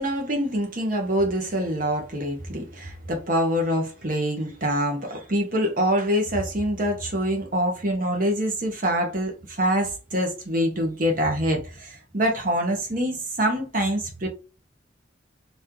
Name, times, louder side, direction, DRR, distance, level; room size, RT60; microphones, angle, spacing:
voice 1, 0.0-14.3, equal, 45° right, 1.2 m, -25 dB
3.2 x 2.8 x 3.7 m
head